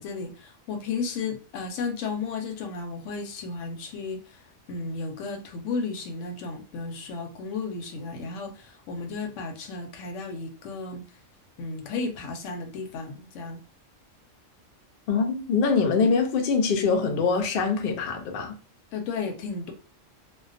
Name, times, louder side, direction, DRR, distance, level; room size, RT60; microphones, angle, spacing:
voice 1, 0.0-4.4 4.7-11.0 11.6-13.6 18.9-19.7, left 4 dB, 75° left, 0.9 m, -33 dB
voice 2, 15.1-18.6, left 5 dB, 60° left, 0.6 m, -24 dB
2.2 x 2.2 x 2.4 m
omnidirectional pair, 1.3 m